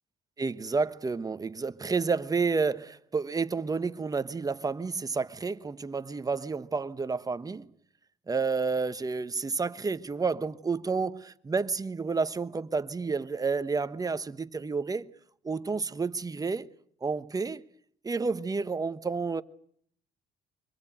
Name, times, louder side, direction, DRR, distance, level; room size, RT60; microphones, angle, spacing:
voice 1, 0.4-7.7 8.3-15.1 15.4-16.7 17.0-17.7 18.0-19.4, right 4 dB, 20° right, 1.1 m, -30 dB
25.0 x 21.5 x 9.1 m
cardioid pair, 110°, 17 cm